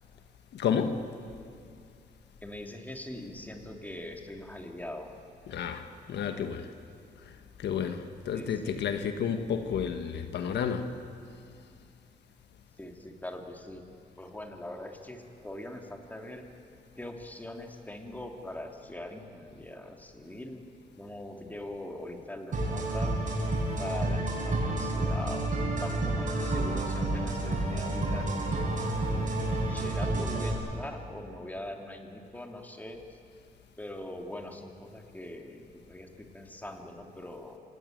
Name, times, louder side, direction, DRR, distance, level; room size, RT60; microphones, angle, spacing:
voice 1, 0.5-1.0 5.5-6.7 7.6-10.9, left 7 dB, 85° left, 7 dB, 1.4 m, -31 dB
voice 2, 2.4-5.1 8.3-8.8 12.8-13.8 14.2-16.6 17.0-20.6 21.0-23.1 23.8-25.4 25.8-28.5 29.1-29.3 29.5-33.0 33.8-37.6, left 1 dB, 10° left, 3 dB, 2.8 m, -42 dB
sound 1, 22.5-30.5, right 2 dB, 50° right, 7.8 m, -30 dB
28.5 x 17.5 x 9.1 m, 2.5 s
cardioid pair, 110°, 17 cm